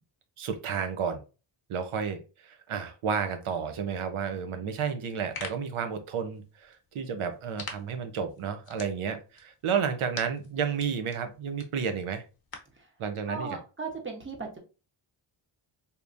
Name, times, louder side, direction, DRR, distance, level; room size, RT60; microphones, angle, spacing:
voice 1, 0.4-1.2 1.7-12.2 13.0-13.6, right 6 dB, 75° right, 0.8 m, -31 dB
sound 1, 5.0-12.8, left 4 dB, 45° left, 0.9 m, -47 dB
voice 2, 13.3-14.6, right 4 dB, 25° right, 1.0 m, -37 dB
3.5 x 2.9 x 2.5 m
cardioid pair, 95°, 50 cm